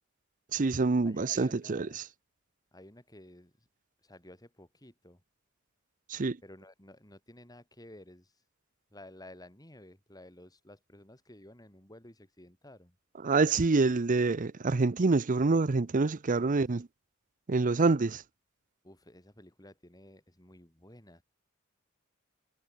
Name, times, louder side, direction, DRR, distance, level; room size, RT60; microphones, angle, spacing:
voice 1, 0.5-2.0 6.1-6.4 13.2-16.9 17.5-18.2, right 3 dB, 40° right, 0.6 m, -26 dB
voice 2, 1.0-2.0 2.7-3.7 4.0-5.2 6.4-8.4 8.9-12.9 16.3-16.7 18.8-21.2, left 1 dB, 20° left, 6.7 m, -53 dB
head